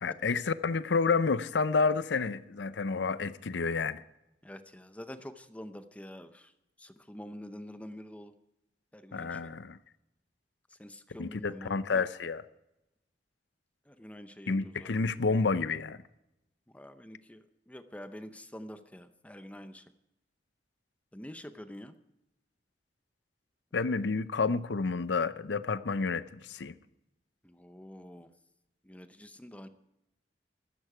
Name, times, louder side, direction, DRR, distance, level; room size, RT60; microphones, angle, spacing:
voice 1, 0.0-4.0 9.1-9.8 11.2-12.4 14.5-16.0 23.7-26.8, left 4 dB, 90° left, 0.6 m, -30 dB
voice 2, 4.4-6.5 6.8-8.3 8.9-9.4 10.7-12.0 13.9-15.0 16.7-19.9 21.1-22.0 27.4-28.3 28.8-29.7, left 1 dB, 10° left, 0.7 m, -47 dB
15.0 x 13.5 x 4.9 m
head